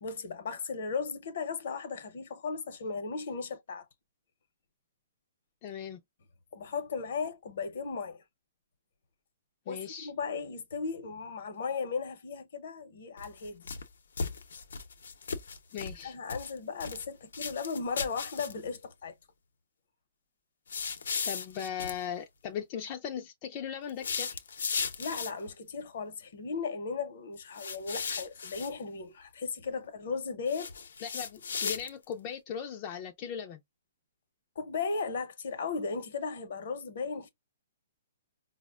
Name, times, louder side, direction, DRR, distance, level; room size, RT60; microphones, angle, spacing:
voice 1, 0.0-3.9 6.5-8.2 9.7-13.7 16.0-19.1 25.0-30.7 34.6-37.3, left 5 dB, 50° left, 0.7 m, -36 dB
voice 2, 5.6-6.0 9.7-10.1 15.7-16.1 21.2-24.4 31.0-33.6, left 8 dB, 25° left, 0.3 m, -38 dB
sound 1, 13.2-13.9 14.2-16.0 16.3-17.1 17.3-18.8 20.7-22.0 23.9-25.5 27.6-28.7 30.5-32.1, left 5 dB, 85° left, 0.6 m, -36 dB
4.7 x 2.1 x 2.3 m
hypercardioid pair, 170°, 0 cm